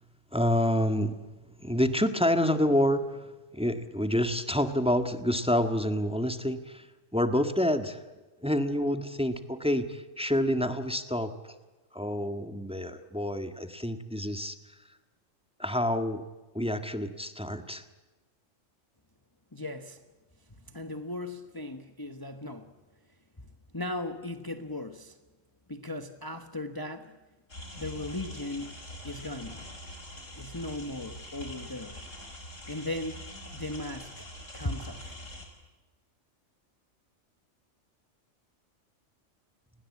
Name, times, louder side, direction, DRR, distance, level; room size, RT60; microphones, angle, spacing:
voice 1, 0.3-1.1 1.6-3.3 3.5-6.9 7.1-8.0 8.4-11.5 11.9-14.6 15.6-16.2 16.5-17.8, left 1 dB, 5° right, 7 dB, 1.6 m, -28 dB
voice 2, 19.5-20.0 20.6-22.7 23.7-25.2 25.7-27.1 27.8-28.8 29.0-29.7 30.4-32.0 32.7-33.2 33.5-34.3 34.5-35.2, left 2 dB, 20° left, 7 dB, 1.3 m, -37 dB
sound 1, 27.5-35.5, equal, 80° left, 5.9 m, -44 dB
29.5 x 20.5 x 8.5 m, 1.2 s
omnidirectional pair, 1.3 m